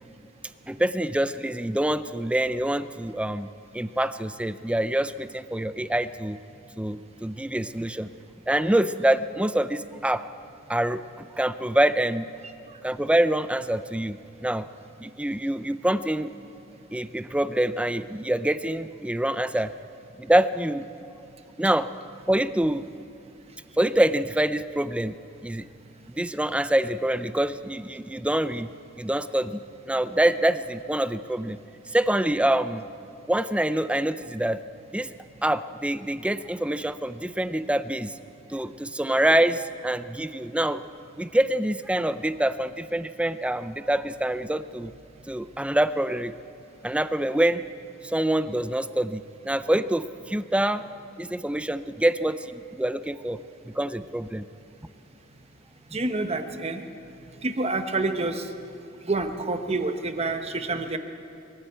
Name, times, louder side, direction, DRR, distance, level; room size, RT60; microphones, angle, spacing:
voice 1, 0.7-3.5 3.7-6.4 6.8-8.1 8.5-10.2 10.7-12.3 12.8-14.2 14.4-14.7 15.0-16.3 16.9-19.7 20.2-20.8 21.6-21.9 22.3-22.8 23.8-25.1 25.4-25.6 26.2-28.7 29.0-29.6 29.9-31.6 31.9-32.8 33.3-34.6 34.9-35.1 35.4-38.1 38.5-40.8 41.2-44.9 45.3-46.3 46.8-47.6 48.0-50.8 51.2-53.4 53.7-54.4, right 1 dB, 5° right, 12 dB, 0.5 m, -25 dB
voice 2, 55.9-56.8 57.4-58.5 59.0-61.0, right 3 dB, 30° right, 7 dB, 1.1 m, -28 dB
22.0 x 14.5 x 8.2 m, 2.8 s
head